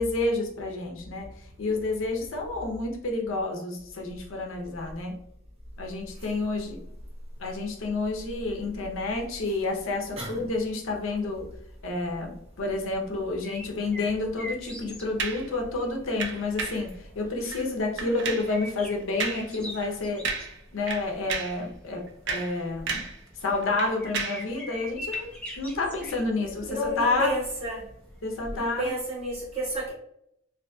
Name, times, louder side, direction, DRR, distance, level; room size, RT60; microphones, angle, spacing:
voice 1, 0.0-5.2 5.8-6.8 7.4-11.5 11.8-20.3 20.7-23.1 23.4-27.3 28.2-28.9, left 3 dB, 80° left, 0.6 m, -30 dB
sound 1, 13.4-28.6, left 1 dB, 5° left, 0.4 m, -43 dB
sound 2, 15.2-15.5 16.2-16.9 17.4-17.7 18.0-18.5 19.2-19.5 19.8-19.9 20.2-20.6 20.9-21.6 22.1-23.2 23.5-24.5 25.1-25.3, right 4 dB, 60° right, 0.5 m, -33 dB
voice 2, 26.4-27.8 28.5-29.9, equal, 30° right, 1.2 m, -31 dB
2.6 x 2.6 x 2.2 m
head